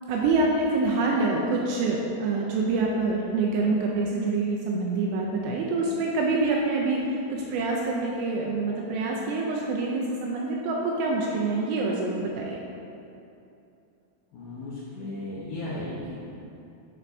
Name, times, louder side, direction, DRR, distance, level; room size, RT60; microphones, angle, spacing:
voice 1, 0.1-7.0 7.3-12.6, right 3 dB, 85° right, -2 dB, 2.5 m, -26 dB
voice 2, 14.3-16.1, left 1 dB, 75° left, -8 dB, 2.3 m, -35 dB
9.7 x 4.2 x 2.6 m, 2.7 s
omnidirectional pair, 5.3 m